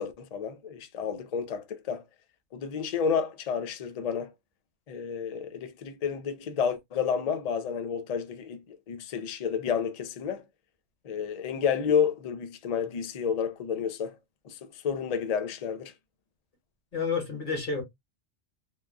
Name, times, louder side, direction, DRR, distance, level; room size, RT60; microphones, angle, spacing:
voice 1, 0.0-2.0 2.5-4.3 4.9-10.4 11.0-14.2 14.4-15.9, left 7 dB, 90° left, 0.3 m, -30 dB
voice 2, 16.9-17.8, left 5 dB, 40° left, 1.3 m, -30 dB
3.5 x 2.3 x 2.4 m
omnidirectional pair, 1.3 m